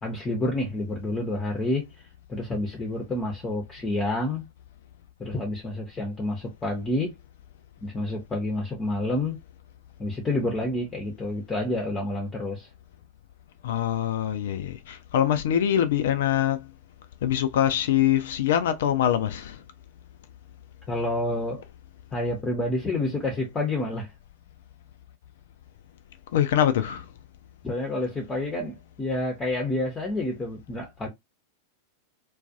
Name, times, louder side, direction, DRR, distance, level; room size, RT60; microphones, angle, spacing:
voice 1, 0.0-1.9 2.3-4.5 5.2-7.2 7.8-9.4 10.0-12.7 20.9-21.6 22.1-24.1 27.6-31.1, left 2 dB, 15° left, 0.7 m, -29 dB
voice 2, 13.6-16.6 17.2-19.6 26.3-27.1, left 10 dB, 55° left, 0.4 m, -24 dB
2.4 x 2.2 x 2.6 m
figure-of-eight pair, 90°, 0 cm